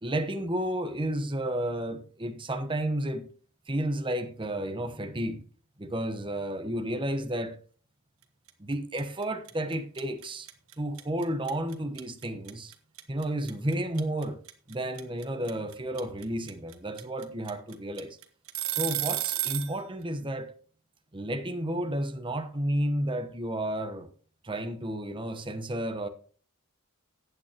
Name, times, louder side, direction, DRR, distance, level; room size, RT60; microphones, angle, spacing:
voice 1, 0.0-3.3 3.7-5.4 5.8-7.6 8.6-10.5 10.8-12.7 13.1-14.4 14.7-18.2 18.7-20.5 21.1-24.1 24.4-26.1, right 1 dB, 25° right, 1.0 m, -32 dB
sound 1, 8.5-8.7 9.0-19.7, right 14 dB, 65° right, 1.3 m, -32 dB
15.0 x 9.1 x 2.9 m
head